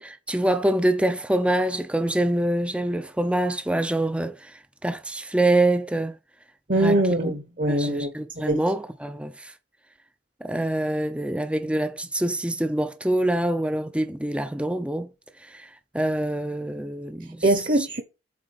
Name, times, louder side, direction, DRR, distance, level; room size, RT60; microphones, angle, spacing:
voice 1, 0.0-6.2 6.7-7.0 7.2-7.3 7.7-9.5 10.4-15.1 15.4-17.4 17.8-17.9, right 1 dB, 5° right, 0.6 m, -25 dB
voice 2, 6.7-8.6 17.4-18.0, right 1 dB, 45° right, 1.1 m, -23 dB
8.3 x 3.9 x 6.7 m
head